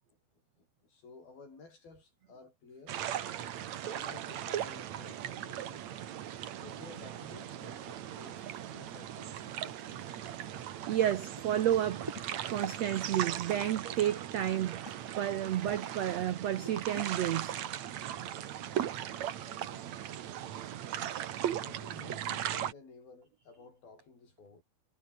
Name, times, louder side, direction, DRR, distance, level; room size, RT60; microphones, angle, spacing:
voice 1, 0.6-3.0 3.8-6.2 6.5-10.1 10.5-10.7 19.5-20.1 21.6-24.6, left 4 dB, 70° left, 9.9 m, -54 dB
sound 1, 2.9-22.7, right 11 dB, 55° right, 2.3 m, -38 dB
sound 2, 7.2-17.5, right 1 dB, 5° right, 3.5 m, -53 dB
voice 2, 10.9-12.1 12.5-14.8 15.2-17.6, right 11 dB, 80° right, 1.5 m, -31 dB
omnidirectional pair, 4.4 m